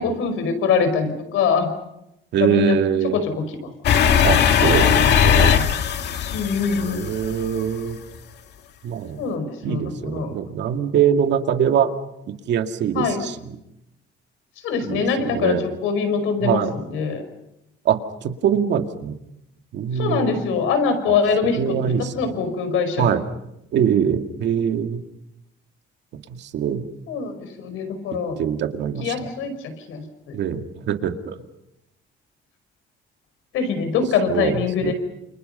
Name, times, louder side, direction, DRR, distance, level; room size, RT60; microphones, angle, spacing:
voice 1, 0.0-1.7 2.4-2.8 3.1-3.2 6.3-7.1 9.2-10.3 13.0-13.2 14.6-15.5 15.8-16.6 16.9-17.2 20.0-21.6 22.2-23.0 27.1-27.3 27.6-28.4 29.0-29.5 29.9-30.0 33.5-34.9, left 5 dB, 90° left, 8 dB, 5.4 m, -22 dB
voice 2, 2.3-3.2 4.2-5.6 6.7-8.0 8.8-9.3 9.6-11.9 12.3-13.6 14.8-15.6 16.4-16.7 17.9-19.2 19.7-20.3 21.1-21.2 21.4-22.4 23.0-23.3 23.7-25.0 26.3-26.8 28.1-29.3 30.3-31.4 34.3-34.9, right 8 dB, 60° right, 6 dB, 2.1 m, -23 dB
sound 1, 3.8-7.7, left 8 dB, 55° left, 2.0 m, -18 dB
29.5 x 28.5 x 5.6 m, 0.85 s
cardioid pair, 170°, 20 cm